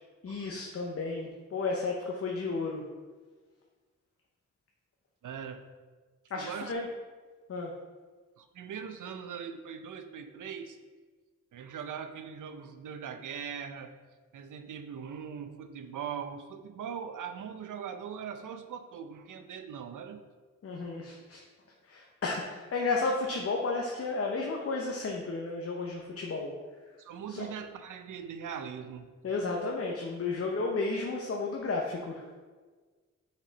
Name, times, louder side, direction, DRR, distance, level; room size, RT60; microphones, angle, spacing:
voice 1, 0.2-2.8 6.3-6.9 7.5-7.7 20.6-21.4 21.8-26.5 27.3-27.5 29.2-32.2, left 3 dB, 50° left, 0 dB, 0.8 m, -33 dB
voice 2, 5.2-5.6 6.4-6.7 8.4-10.8 11.5-13.9 14.3-20.2 27.0-29.1, right 7 dB, 80° right, 8 dB, 0.6 m, -41 dB
5.9 x 4.4 x 4.0 m, 1.4 s
cardioid pair, 85°, 31 cm